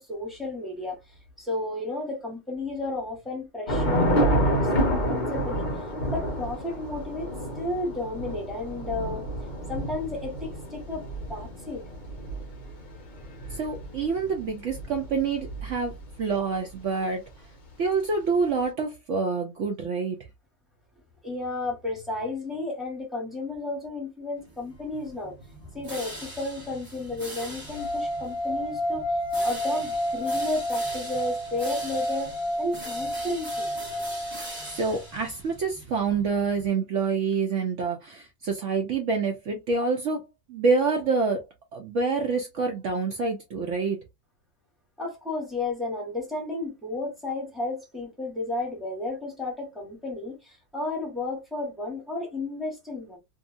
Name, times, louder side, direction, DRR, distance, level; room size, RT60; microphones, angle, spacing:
voice 1, 0.0-5.7 6.1-7.3 7.6-9.2 9.7-11.9 21.2-25.4 25.7-33.7 45.0-53.2, left 2 dB, ahead, 1.2 m, -33 dB
Thunder / Rain, 3.7-16.2, equal, 40° left, 0.7 m, -29 dB
voice 2, 13.5-15.9 16.2-17.2 17.8-20.2 34.6-41.4 41.7-44.0, right 4 dB, 70° right, 0.7 m, -27 dB
sound 1, 24.4-36.7, right 1 dB, 15° right, 0.9 m, -42 dB
sound 2, 27.7-34.8, equal, 60° left, 1.1 m, -30 dB
2.7 x 2.7 x 2.5 m
omnidirectional pair, 1.9 m